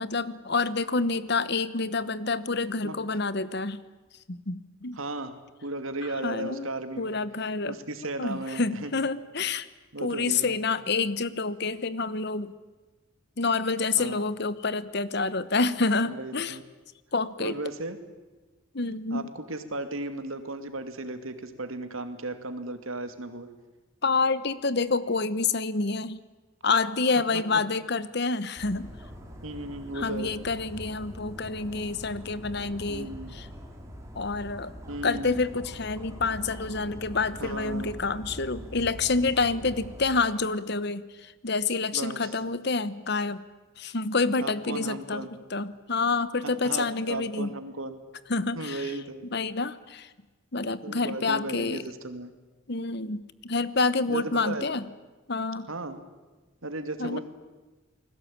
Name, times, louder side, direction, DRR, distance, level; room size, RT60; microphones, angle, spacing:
voice 1, 0.0-3.8 4.3-5.0 6.2-6.7 7.0-7.8 8.2-9.7 10.0-12.5 13.4-16.6 17.1-17.6 18.7-19.3 24.0-26.2 26.6-28.9 29.9-33.5 34.1-34.7 35.0-43.4 43.8-45.2 45.5-47.5 48.3-49.0 49.3-50.1 50.5-51.8 52.7-54.9 55.3-55.7 57.0-57.2, left 3 dB, 50° left, 16 dB, 1.0 m, -28 dB
voice 2, 5.0-5.3 5.6-7.2 7.7-8.9 9.9-10.6 14.0-14.2 16.0-16.6 17.4-18.0 19.1-23.5 27.3-27.4 29.4-30.4 32.9-33.3 34.9-35.4 37.4-38.0 41.9-42.3 44.4-45.3 46.4-48.0 48.5-49.3 50.8-52.3 54.1-54.6 55.7-56.0 56.6-57.2, right 2 dB, 75° right, 9 dB, 2.5 m, -35 dB
Dog, 28.6-40.1, equal, 15° right, 3.5 m, -43 dB
29.5 x 20.5 x 8.8 m, 1.2 s
head